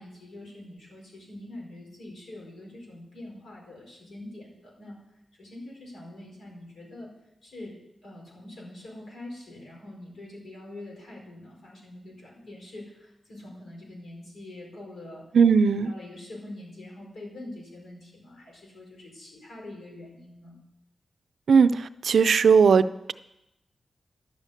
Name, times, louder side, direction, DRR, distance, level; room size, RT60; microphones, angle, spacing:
voice 1, 0.0-5.0 5.4-7.1 7.4-15.2 15.8-20.5, left 1 dB, 90° left, -2 dB, 5.0 m, -44 dB
voice 2, 15.3-15.9 21.5-23.1, right 6 dB, 70° right, 13 dB, 0.5 m, -19 dB
11.5 x 7.3 x 8.3 m, 0.87 s
wide cardioid pair, 160°, 0 cm